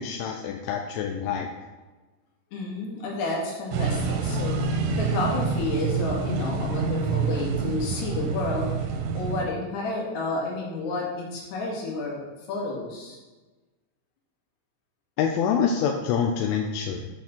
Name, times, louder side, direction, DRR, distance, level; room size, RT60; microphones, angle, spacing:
voice 1, 0.0-1.5 15.2-17.1, left 7 dB, 85° left, 2 dB, 3.2 m, -26 dB
voice 2, 2.5-4.6 5.0-8.7 9.1-13.2, left 2 dB, 65° left, -3 dB, 4.2 m, -30 dB
sound 1, 3.7-9.4, right 5 dB, 75° right, 2.7 m, -27 dB
8.2 x 7.0 x 6.0 m, 1.2 s
omnidirectional pair, 5.4 m